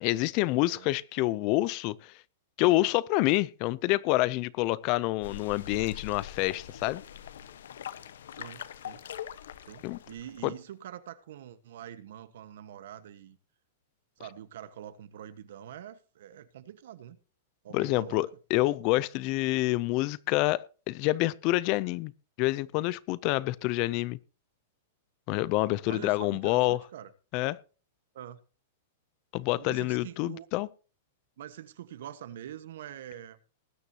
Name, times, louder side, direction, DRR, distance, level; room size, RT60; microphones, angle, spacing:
voice 1, 0.0-2.1 2.6-7.0 9.8-10.0 10.4-10.5 17.7-22.1 22.4-24.2 25.3-26.8 27.3-27.6 29.3-30.7, left 19 dB, 30° left, 0.5 m, -27 dB
sound 1, 5.2-10.5, left 9 dB, 80° left, 1.1 m, -43 dB
voice 2, 8.3-9.0 9.7-13.4 14.2-17.2 17.6-18.2 25.9-27.1 28.1-28.4 29.6-30.5 31.4-33.4, right 11 dB, 60° right, 1.3 m, -45 dB
20.0 x 9.8 x 2.9 m
supercardioid pair, 170°, 0 cm